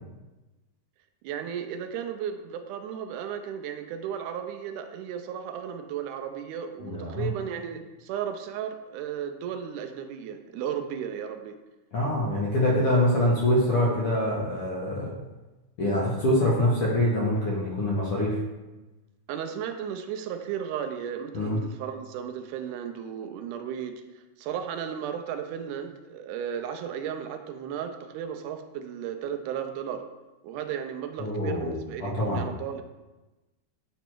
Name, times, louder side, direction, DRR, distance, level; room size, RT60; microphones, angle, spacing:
voice 1, 1.2-11.6 19.3-30.0 30.4-32.8, right 8 dB, 85° right, 7 dB, 2.0 m, -35 dB
voice 2, 6.8-7.3 11.9-15.1 15.8-18.4 21.3-21.6 31.2-31.7 32.0-32.4, left 1 dB, 65° left, -4 dB, 1.5 m, -25 dB
8.9 x 3.1 x 4.5 m, 1.1 s
omnidirectional pair, 3.6 m